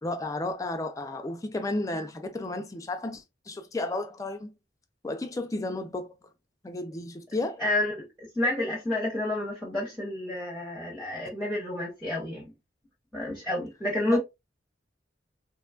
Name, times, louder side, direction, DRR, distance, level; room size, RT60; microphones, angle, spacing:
voice 1, 0.0-4.5 5.0-6.1 6.6-7.6 14.1-14.2, left 2 dB, 20° left, 0.3 m, -33 dB
voice 2, 7.6-12.4 13.1-14.2, left 1 dB, ahead, 0.7 m, -29 dB
3.0 x 2.2 x 2.2 m
head